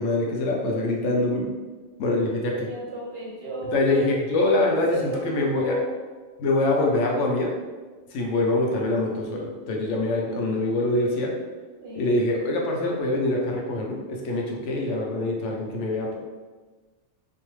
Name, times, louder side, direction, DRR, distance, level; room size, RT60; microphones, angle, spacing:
voice 1, 0.0-1.5 2.0-2.7 3.7-5.8 6.4-7.5 8.1-11.3 11.9-16.2, left 2 dB, 80° left, 0 dB, 0.9 m, -24 dB
voice 2, 2.5-4.1 4.6-5.9 11.8-12.1, right 1 dB, 60° right, -5 dB, 0.9 m, -33 dB
2.6 x 2.0 x 3.0 m, 1.3 s
omnidirectional pair, 1.2 m